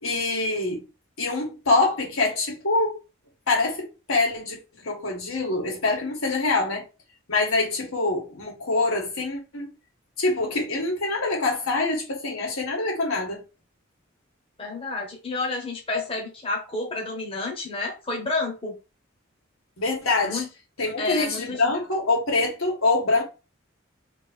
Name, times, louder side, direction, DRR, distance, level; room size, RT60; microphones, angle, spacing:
voice 1, 0.0-0.8 1.2-3.0 3.5-6.8 7.3-9.7 10.2-13.4 19.8-20.4 20.8-23.2, left 3 dB, 85° left, 1.7 m, -25 dB
voice 2, 14.6-18.8 20.2-20.5 21.0-21.7, left 3 dB, 25° left, 1.0 m, -30 dB
3.4 x 2.8 x 4.3 m
head